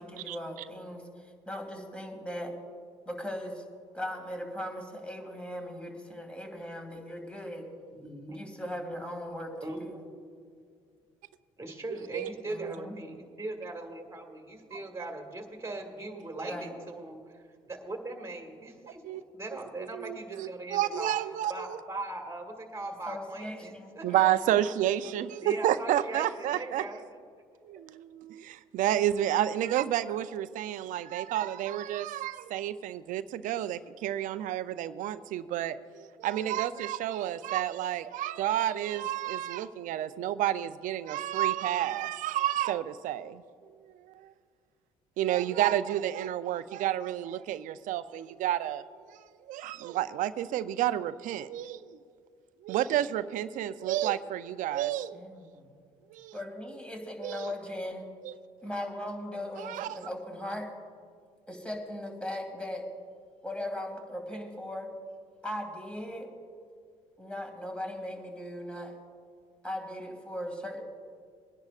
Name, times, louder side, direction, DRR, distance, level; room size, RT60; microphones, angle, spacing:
voice 1, 0.0-2.5 3.1-3.6 3.9-7.7 8.3-10.0 12.5-13.0 16.4-16.7 23.0-24.4 55.1-55.7 56.3-58.1 58.6-60.7 61.5-62.9 63.4-64.9 65.4-66.3 67.2-68.9 69.6-70.8, left 1 dB, 10° left, 2 dB, 2.4 m, -38 dB
voice 2, 8.0-8.4 9.6-10.0 11.6-17.2 17.7-21.1 21.5-24.1 25.4-27.0, right 2 dB, 20° right, 3 dB, 2.0 m, -40 dB
voice 3, 11.9-12.3 12.6-12.7 14.7-14.8 16.3-16.4 18.8-19.2 19.8-21.8 24.0-26.9 27.6-43.4 44.1-44.3 45.2-48.8 49.5-51.8 52.6-55.2 56.1-56.4 57.2-57.5 58.2-58.3 59.6-60.0, right 12 dB, 70° right, 13 dB, 0.5 m, -30 dB
23.5 x 10.5 x 2.5 m, 2.1 s
hypercardioid pair, 60°, 14 cm